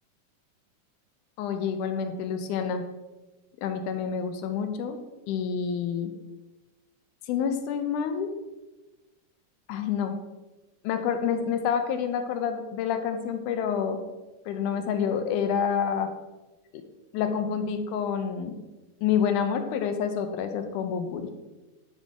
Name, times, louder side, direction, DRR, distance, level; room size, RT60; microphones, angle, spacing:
voice 1, 1.4-2.8 3.6-5.0 5.3-6.1 7.3-8.3 9.7-10.1 10.8-14.0 14.5-16.1 17.1-18.6 19.0-21.3, left 7 dB, 85° left, 7 dB, 2.1 m, -28 dB
10.0 x 3.5 x 3.8 m, 1.1 s
omnidirectional pair, 3.6 m